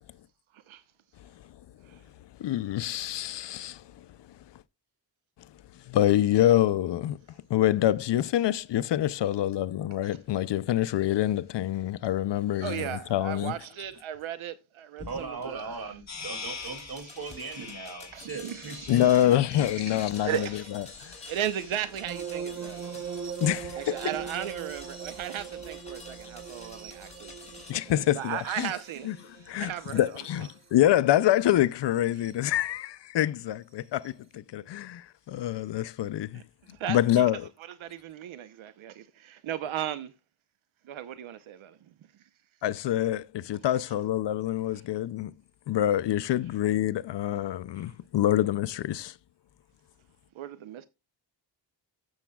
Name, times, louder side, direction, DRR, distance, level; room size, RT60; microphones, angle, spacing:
voice 1, 2.4-4.1 5.9-7.2 7.5-13.5 18.9-20.5 20.7-21.1 23.4-24.0 27.7-28.7 29.1-29.2 29.5-36.4 36.9-37.4 42.6-45.3 45.7-49.1, left 12 dB, 65° left, 0.5 m, -26 dB
voice 2, 12.6-15.9 16.7-16.8 18.1-22.9 23.8-27.4 27.9-29.1 29.4-30.1 36.3-37.3 37.7-40.1 40.8-42.3 47.8-47.9 50.3-50.9, right 11 dB, 90° right, 0.8 m, -37 dB
sound 1, 15.0-27.7, left 3 dB, 15° left, 3.2 m, -49 dB
voice 3, 15.1-19.0, right 4 dB, 50° right, 2.4 m, -39 dB
sound 2, 16.1-30.1, left 5 dB, 35° left, 1.4 m, -47 dB
sound 3, 22.0-30.7 32.0-32.3 34.0-34.1, right 7 dB, 35° right, 1.0 m, -40 dB
13.0 x 7.1 x 2.3 m
wide cardioid pair, 115°, 46 cm